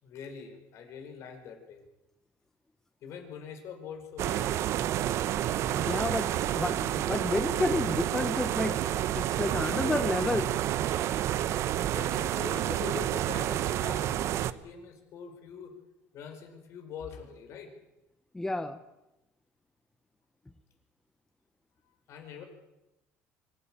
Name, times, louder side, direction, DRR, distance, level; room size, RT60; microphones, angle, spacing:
voice 1, 0.0-1.8 3.0-4.5 11.9-15.7 16.1-17.7 22.1-22.5, left 6 dB, 55° left, 5 dB, 4.9 m, -43 dB
sound 1, 4.2-14.5, right 12 dB, 55° right, 0.9 m, -29 dB
voice 2, 5.6-8.8 9.2-10.5 18.3-18.8, left 2 dB, 10° left, 9 dB, 0.9 m, -30 dB
24.5 x 15.0 x 9.0 m, 0.96 s
cardioid pair, 130°, 6 cm